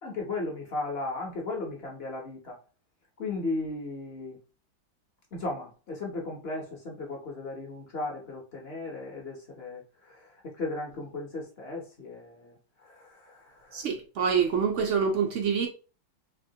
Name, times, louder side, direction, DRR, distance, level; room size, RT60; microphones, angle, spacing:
voice 1, 0.0-2.6 3.2-4.4 5.3-13.9, left 2 dB, 55° left, 0.7 m, -36 dB
voice 2, 13.7-15.7, right 6 dB, 75° right, 0.6 m, -26 dB
4.6 x 2.8 x 2.7 m
omnidirectional pair, 2.0 m